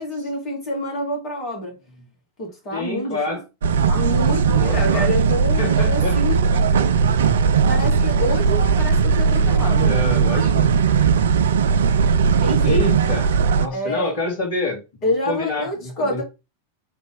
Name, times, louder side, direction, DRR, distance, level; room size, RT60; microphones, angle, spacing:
voice 1, 0.0-1.7 2.4-3.4 3.9-6.4 7.7-9.9 12.4-12.8 13.7-14.2 15.0-16.2, left 1 dB, 35° left, 2.4 m, -27 dB
voice 2, 2.7-3.4 4.5-5.1 5.6-6.2 6.8-7.1 9.8-10.7 12.6-14.8 15.3-16.2, left 2 dB, 50° left, 2.0 m, -27 dB
sound 1, 3.6-13.7, right 6 dB, 60° right, 0.3 m, -18 dB
3.9 x 3.4 x 3.5 m
figure-of-eight pair, 90°, 0 cm